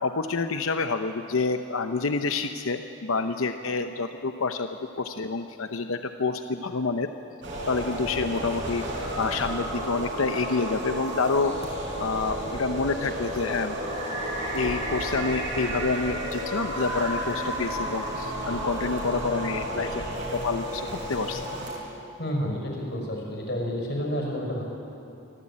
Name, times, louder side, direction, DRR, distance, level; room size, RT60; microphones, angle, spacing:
voice 1, 0.0-7.1 7.7-8.8 9.2-11.5 12.0-13.8 14.5-20.0 20.3-21.5, left 4 dB, 90° left, 8 dB, 0.8 m, -28 dB
sound 1, 7.4-21.7, right 1 dB, 60° right, 6.3 m, -32 dB
voice 2, 22.2-24.6, equal, 55° left, 0 dB, 5.5 m, -30 dB
24.5 x 16.5 x 8.7 m, 2.7 s
head